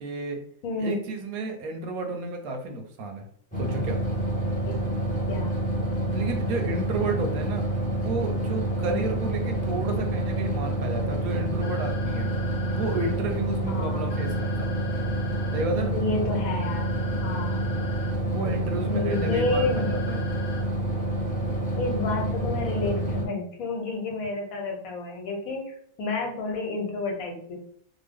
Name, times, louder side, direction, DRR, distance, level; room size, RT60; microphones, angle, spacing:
voice 1, 0.0-0.4 0.8-3.3 3.6-4.0 6.1-7.7 7.9-12.3 12.7-14.7 15.5-15.9 18.3-20.2, right 3 dB, 85° right, 4 dB, 1.1 m, -32 dB
voice 2, 0.6-1.0 4.6-4.7 5.3-5.5 8.9-9.1 13.7-14.1 15.9-16.9 17.2-17.6 18.9-19.9 21.7-27.6, left 3 dB, 80° left, 1 dB, 1.2 m, -30 dB
sound 1, 3.5-23.2, right 1 dB, 10° left, 0.5 m, -28 dB
sound 2, 11.6-13.1 14.1-15.6 16.6-18.1 19.1-20.6, left 6 dB, 50° left, 1.0 m, -42 dB
2.9 x 2.1 x 3.4 m, 0.63 s
omnidirectional pair, 1.5 m